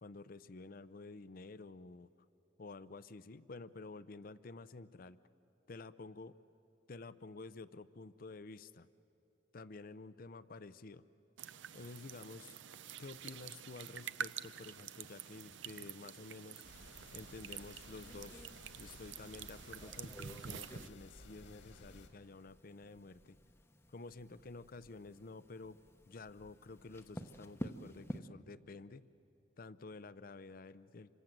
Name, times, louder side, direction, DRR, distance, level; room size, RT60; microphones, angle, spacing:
voice 1, 0.0-2.1 2.6-5.2 5.7-6.3 6.9-8.9 9.5-11.0 11.7-12.6 13.0-16.6 17.1-18.5 18.8-23.4 23.9-25.8 26.1-29.1 29.6-31.1, left 3 dB, 50° left, 15 dB, 0.6 m, -51 dB
sound 1, 11.4-20.9, right 8 dB, 75° right, 0.6 m, -48 dB
sound 2, 16.6-22.1, left 2 dB, 75° left, 2.1 m, -56 dB
sound 3, 17.8-28.2, equal, 15° left, 0.8 m, -52 dB
27.0 x 25.5 x 7.5 m, 3.0 s
head